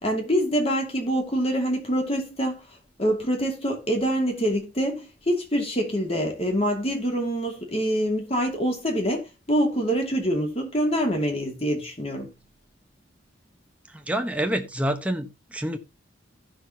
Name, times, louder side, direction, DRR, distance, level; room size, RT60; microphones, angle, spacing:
voice 1, 0.0-2.6 3.0-12.3, equal, 30° left, 2.6 m, -25 dB
voice 2, 13.9-15.8, right 1 dB, 5° right, 1.0 m, -27 dB
15.5 x 6.2 x 2.9 m
head